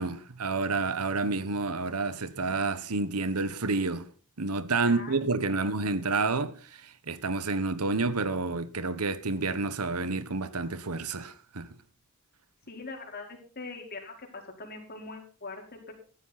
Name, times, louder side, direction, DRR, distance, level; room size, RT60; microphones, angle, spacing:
voice 1, 0.0-4.1 4.4-11.7, right 3 dB, 90° right, 1.3 m, -29 dB
voice 2, 12.7-15.9, left 3 dB, 45° left, 4.7 m, -42 dB
14.5 x 13.0 x 4.2 m
head